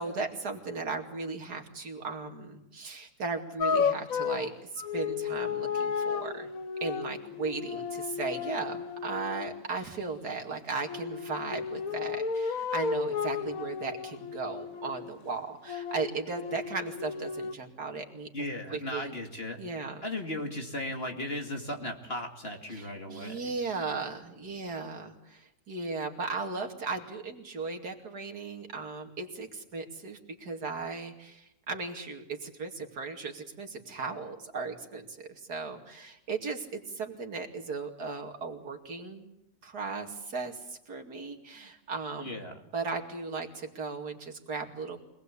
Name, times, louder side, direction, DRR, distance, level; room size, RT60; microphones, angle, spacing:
voice 1, 0.0-6.5 6.8-18.3 18.7-19.1 19.6-20.0 22.7-39.3 39.6-42.4 42.7-45.0, right 4 dB, 70° right, 4 dB, 3.0 m, -36 dB
sound 1, 3.6-9.7 10.8-15.2 15.7-17.5, left 6 dB, 60° left, 1.5 m, -33 dB
voice 2, 18.3-19.6 20.0-23.5 42.2-42.5, left 1 dB, 35° left, 3 dB, 2.4 m, -36 dB
25.0 x 19.5 x 8.4 m, 0.85 s
omnidirectional pair, 1.8 m